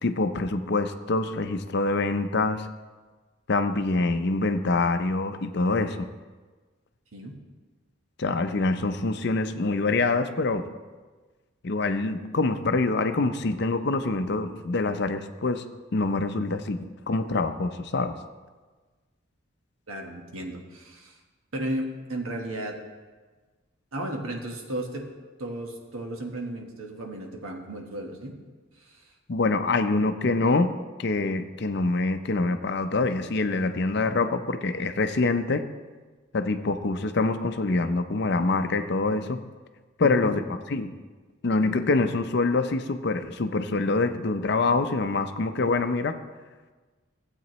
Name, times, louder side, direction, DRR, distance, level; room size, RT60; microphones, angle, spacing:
voice 1, 0.0-2.7 3.5-6.1 8.2-10.6 11.6-15.6 15.9-18.1 29.3-30.7 31.0-35.6 36.3-39.4 40.0-40.4 40.7-40.9 41.4-46.1, left 3 dB, 50° left, 9 dB, 0.5 m, -25 dB
voice 2, 19.9-21.2 21.5-22.8 23.9-25.1 25.4-28.3 28.8-29.1 40.0-40.3, right 1 dB, 85° right, 2 dB, 1.4 m, -34 dB
15.0 x 8.3 x 3.1 m, 1.3 s
head